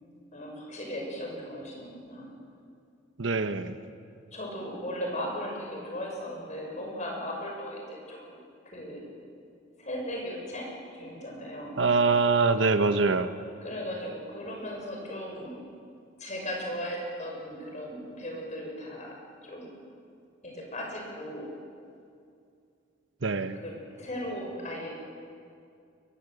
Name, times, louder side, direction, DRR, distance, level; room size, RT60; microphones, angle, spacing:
voice 1, 0.3-2.3 4.3-8.4 8.6-9.1 9.8-11.8 13.6-15.6 16.2-19.2 19.4-19.8 20.4-21.5 23.5-24.9, equal, 40° left, 0 dB, 6.5 m, -37 dB
voice 2, 3.2-3.8 11.8-13.3 23.2-23.6, right 4 dB, 70° right, 9 dB, 1.0 m, -24 dB
22.5 x 20.5 x 8.0 m, 2.4 s
head